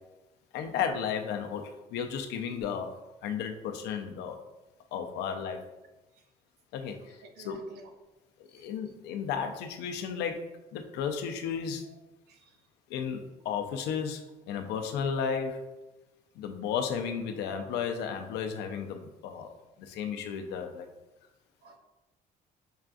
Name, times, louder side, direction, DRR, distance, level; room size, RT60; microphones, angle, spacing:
voice 1, 0.5-3.0 3.2-4.4 4.9-5.6 6.7-7.2 7.4-7.6 8.4-10.4 10.7-11.8 12.9-15.7 16.4-20.9, left 7 dB, 85° left, 5 dB, 0.5 m, -34 dB
voice 2, 7.0-7.9 8.5-8.7 11.8-12.0 12.3-12.6 21.6-21.8, right 3 dB, 75° right, 5 dB, 0.6 m, -54 dB
5.6 x 2.4 x 2.5 m, 1.0 s
cardioid pair, 110°, 17 cm